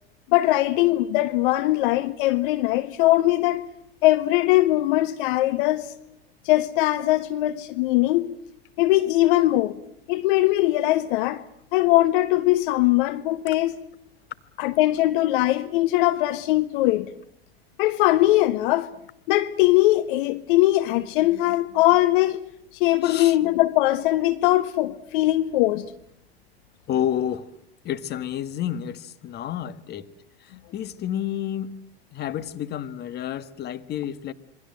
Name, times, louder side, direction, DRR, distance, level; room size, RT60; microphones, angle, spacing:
voice 1, 0.3-3.6 4.0-5.9 6.4-8.3 8.8-9.7 10.1-11.4 11.7-13.8 14.6-17.1 17.8-18.9 19.3-22.4 22.8-25.8, left 16 dB, 55° left, 1.4 m, -21 dB
voice 2, 23.0-23.4 26.9-27.5 27.8-30.1 30.4-31.8 32.1-34.3, left 10 dB, 30° left, 1.6 m, -30 dB
27.0 x 23.5 x 7.7 m
hypercardioid pair, 95°, 32 cm